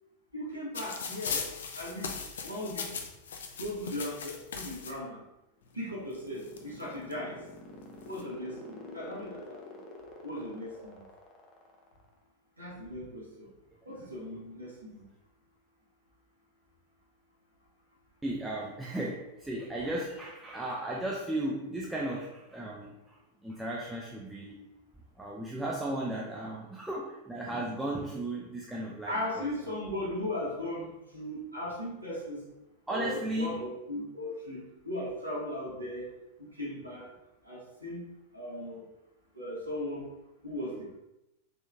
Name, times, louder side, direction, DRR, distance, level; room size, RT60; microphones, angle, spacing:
voice 1, 0.3-1.4 1.8-2.1 2.4-2.9 3.6-5.2 5.7-7.4 8.0-9.6 10.2-11.0 12.6-13.5 13.8-15.0 29.1-32.4 32.9-36.1 36.4-37.1 37.4-38.1 38.3-38.8 39.3-40.1 40.4-41.0, left 1 dB, 85° right, -6 dB, 1.5 m, -37 dB
sound 1, 0.7-4.9 5.8-5.9 6.1-7.1 7.8-8.2, left 5 dB, 65° left, 0.5 m, -38 dB
sound 2, 5.6-12.2, left 5 dB, 35° left, 0.9 m, -48 dB
voice 2, 18.2-24.7 25.2-29.5 32.9-33.6, right 1 dB, 5° right, -3 dB, 0.5 m, -35 dB
4.2 x 3.1 x 3.4 m, 0.91 s
figure-of-eight pair, 90°, 0 cm